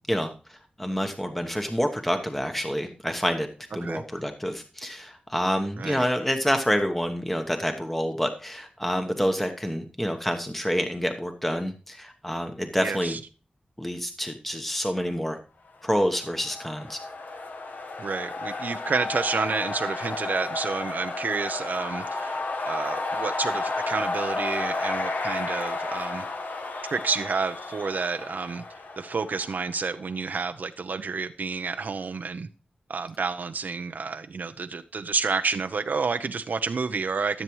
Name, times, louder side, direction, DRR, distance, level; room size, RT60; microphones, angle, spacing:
voice 1, 0.1-3.5 3.7-13.2 13.8-15.4 15.8-17.0, equal, 5° left, 5 dB, 1.0 m, -28 dB
voice 2, 12.8-13.2 18.0-26.2 26.9-28.6 29.0-32.5 32.9-37.4, right 4 dB, 75° right, 8 dB, 0.5 m, -30 dB
sound 1, 16.1-29.8, left 3 dB, 75° left, 1.2 m, -32 dB
14.0 x 7.4 x 3.1 m, 0.36 s
wide cardioid pair, 70°, 3 cm